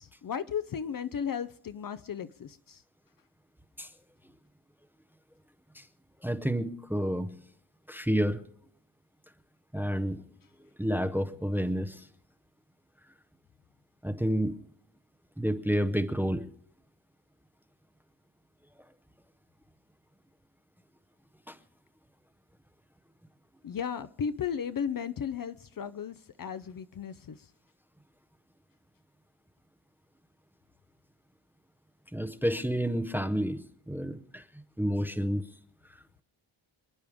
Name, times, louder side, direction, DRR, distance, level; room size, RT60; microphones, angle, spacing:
voice 1, 0.0-2.8 23.6-27.4, left 7 dB, 45° left, 0.6 m, -35 dB
voice 2, 6.2-7.4 7.9-8.4 9.7-10.2 10.6-12.1 14.0-14.6 15.4-16.5 21.5-21.6 32.1-34.4 34.8-35.4 35.9-36.0, equal, 5° right, 0.6 m, -30 dB
27.0 x 10.5 x 3.5 m
wide cardioid pair, 170°, 48 cm